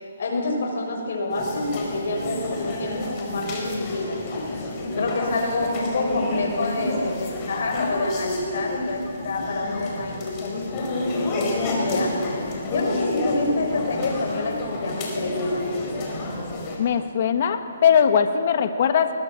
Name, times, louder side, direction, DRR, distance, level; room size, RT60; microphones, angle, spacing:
voice 1, 0.2-4.6 5.0-15.6, left 2 dB, 65° left, 1 dB, 6.8 m, -27 dB
sound 1, 1.3-16.8, left 2 dB, 25° left, 4.7 m, -30 dB
voice 2, 16.8-19.1, left 7 dB, 45° left, 8 dB, 1.5 m, -20 dB
21.5 x 21.0 x 7.5 m, 2.7 s
hypercardioid pair, 155°, 0 cm